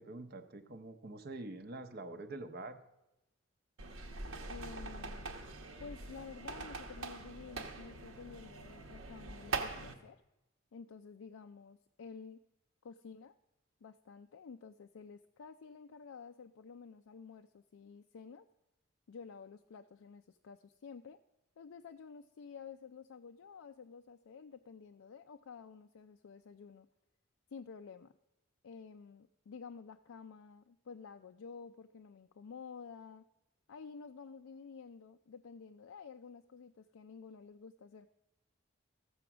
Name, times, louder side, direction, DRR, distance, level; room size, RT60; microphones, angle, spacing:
voice 1, 0.0-2.8, right 2 dB, 50° right, 9 dB, 0.7 m, -46 dB
sound 1, 3.8-9.9, right 3 dB, 85° right, 1.1 m, -43 dB
voice 2, 4.5-5.3 5.8-10.2 10.7-12.4 12.8-13.4 13.8-18.5 19.1-21.2 21.6-26.9 27.5-28.1 28.6-33.3 33.7-38.1, left 5 dB, 90° left, 7 dB, 0.4 m, -51 dB
14.5 x 7.0 x 6.0 m, 0.95 s
head